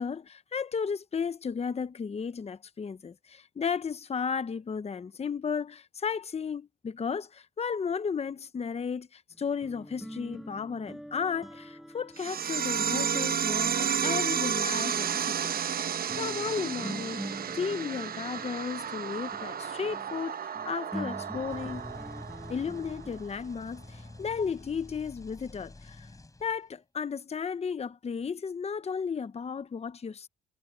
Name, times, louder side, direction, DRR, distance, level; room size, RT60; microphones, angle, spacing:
voice 1, 0.0-15.5 15.9-21.9 22.5-26.1 26.4-30.3, left 6 dB, 30° left, 0.9 m, -34 dB
sound 1, 9.3-14.6 15.2-15.3 16.1-23.2, equal, ahead, 7.6 m, -45 dB
sound 2, 12.2-23.2, right 8 dB, 50° right, 0.9 m, -32 dB
sound 3, 21.3-26.8, left 2 dB, 15° left, 4.8 m, -48 dB
cardioid pair, 90°, 20 cm